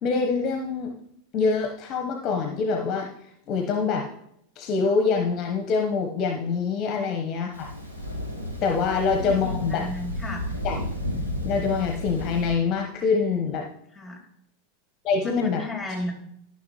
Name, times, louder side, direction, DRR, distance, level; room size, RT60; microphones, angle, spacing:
voice 1, 0.0-0.9 1.3-3.1 3.5-4.1 4.6-7.7 8.6-9.8 10.6-10.8 11.4-13.6 15.0-15.6, left 5 dB, 40° left, 3 dB, 1.1 m, -25 dB
Thunder, 7.5-12.5, left 1 dB, 90° right, 3.2 m, -32 dB
voice 2, 9.2-10.5 13.9-14.2 15.2-16.1, left 1 dB, 5° left, 1 dB, 2.6 m, -34 dB
13.5 x 6.1 x 3.1 m, 0.72 s
figure-of-eight pair, 85°, 0 cm